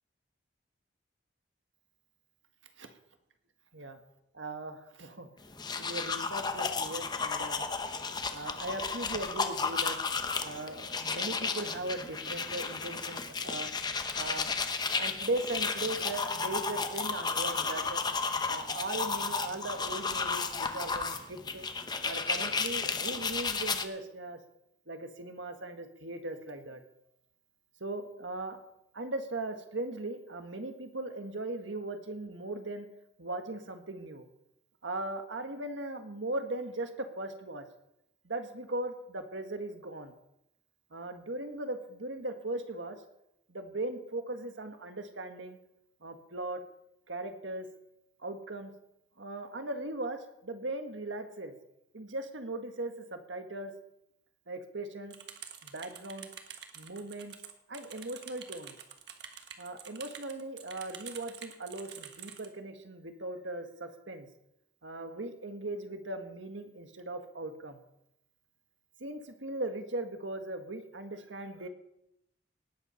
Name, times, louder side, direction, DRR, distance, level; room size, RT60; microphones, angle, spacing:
voice 1, 4.3-5.3 5.7-7.7 8.3-10.0 10.4-18.0 18.5-21.7 22.0-24.4 24.9-26.8 27.8-28.6 28.9-32.9 33.2-34.3 34.8-37.6 38.2-40.1 40.9-43.0 43.5-45.6 46.0-46.6 47.1-47.7 48.2-48.7 49.2-51.5 51.9-53.7 54.5-55.2 55.6-56.3 56.7-57.3 57.7-58.8 59.6-64.3 64.8-67.8 69.0-71.7, right 2 dB, 80° right, 6 dB, 1.6 m, -38 dB
sound 1, 5.4-23.8, left 4 dB, 20° left, 0.8 m, -33 dB
sound 2, 55.1-62.5, right 8 dB, 60° right, 1.5 m, -47 dB
18.5 x 8.7 x 5.6 m, 0.84 s
head